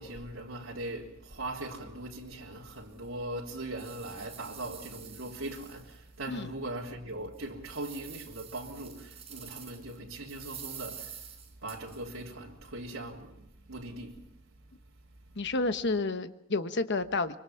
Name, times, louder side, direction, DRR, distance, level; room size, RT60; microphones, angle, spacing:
voice 1, 0.0-11.3 11.6-14.3, right 1 dB, 90° right, 3.5 m, -40 dB
sound 1, 2.1-2.2 2.7-2.8 3.4-6.2 6.6-6.7 7.2-10.0 10.3-12.2, right 8 dB, 30° right, 4.5 m, -48 dB
voice 2, 15.4-17.4, left 3 dB, 60° left, 1.2 m, -30 dB
25.5 x 24.0 x 5.8 m
head